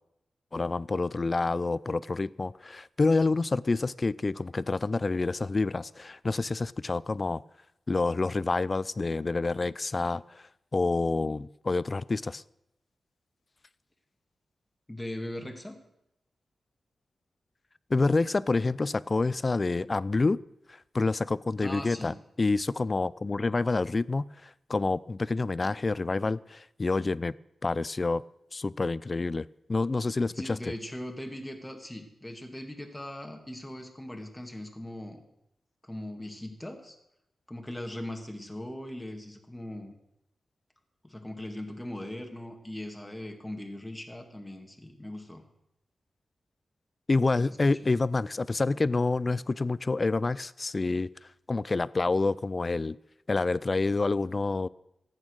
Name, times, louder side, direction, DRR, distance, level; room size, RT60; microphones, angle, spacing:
voice 1, 0.5-7.4 7.9-10.4 10.7-12.4 17.9-20.4 20.9-27.3 27.6-28.2 28.5-30.6 47.1-51.1 51.5-53.0 53.3-54.7, left 3 dB, 35° left, 20 dB, 0.4 m, -28 dB
voice 2, 14.9-15.8 21.6-22.2 30.3-35.2 35.8-37.0 37.5-40.0 41.0-45.4 47.4-47.6, left 1 dB, 10° left, 3 dB, 1.9 m, -40 dB
14.5 x 8.8 x 6.4 m, 0.85 s
wide cardioid pair, 100°, 0 cm